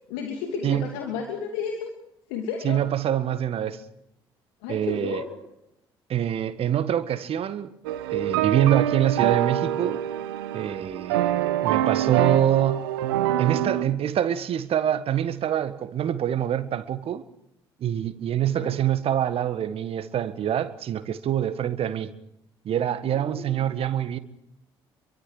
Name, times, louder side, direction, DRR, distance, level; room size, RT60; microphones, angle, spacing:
voice 1, 0.1-1.9 2.3-2.8 4.6-5.4 18.5-18.8 23.1-23.7, left 6 dB, 70° left, 2.9 m, -33 dB
voice 2, 2.6-3.8 4.7-5.2 6.1-7.7 8.1-10.0 10.5-12.9 13.4-17.2 17.8-22.1 22.6-24.2, right 10 dB, 50° right, 1.6 m, -25 dB
sound 1, 7.8-13.8, right 12 dB, 75° right, 1.2 m, -25 dB
28.0 x 23.5 x 4.9 m
figure-of-eight pair, 50°, 13 cm